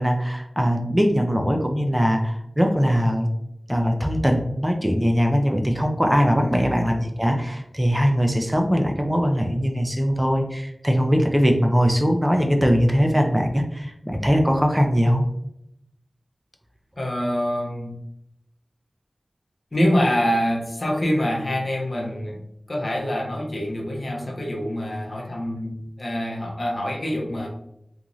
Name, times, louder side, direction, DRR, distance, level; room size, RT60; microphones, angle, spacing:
voice 1, 0.0-3.3 3.7-15.3, equal, 10° right, 3 dB, 0.4 m, -21 dB
voice 2, 17.0-17.9 19.7-22.4 22.7-27.5, equal, 60° left, -1 dB, 0.7 m, -25 dB
2.5 x 2.4 x 3.0 m, 0.79 s
wide cardioid pair, 55°, 0 cm